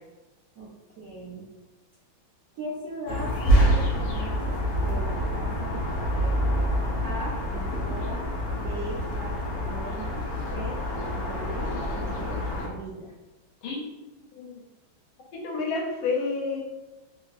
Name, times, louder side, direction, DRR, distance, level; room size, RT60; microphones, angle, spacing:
voice 1, 0.6-1.5 2.5-6.4 7.0-10.2 10.5-10.8 11.1-13.1, right 1 dB, 70° right, -8 dB, 0.8 m, -39 dB
sound 1, 3.1-12.7, equal, 65° left, 0.9 m, -27 dB
voice 2, 13.6-13.9 14.3-14.6 15.3-16.6, left 4 dB, 85° left, 0 dB, 1.5 m, -30 dB
3.4 x 2.7 x 2.3 m, 1.1 s
omnidirectional pair, 2.2 m